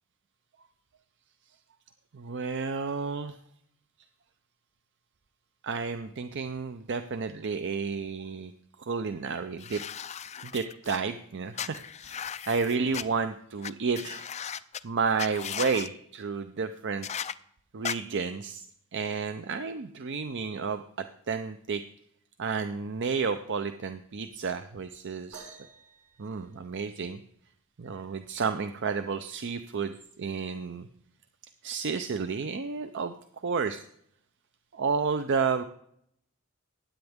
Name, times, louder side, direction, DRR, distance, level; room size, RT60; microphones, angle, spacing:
voice 1, 2.1-3.3 5.6-8.5 8.8-9.8 10.4-14.2 14.8-17.1 17.7-18.6 18.9-20.8 21.3-21.8 22.4-25.6 26.2-27.2 27.8-29.9 30.2-30.9 31.6-33.1 33.4-33.8 34.7-35.6, right 5 dB, 55° right, 9 dB, 0.6 m, -31 dB
sound 1, 9.6-11.0 11.6-13.0 13.6-13.7 14.0-14.8 15.2-15.9 17.0-17.3 17.8-18.0, left 8 dB, 30° left, 0.4 m, -36 dB
sound 2, 25.3-27.2 28.9-29.0 29.8-30.0 30.9-31.0, right 4 dB, 80° right, 3.8 m, -51 dB
16.0 x 10.0 x 3.6 m, 0.69 s
head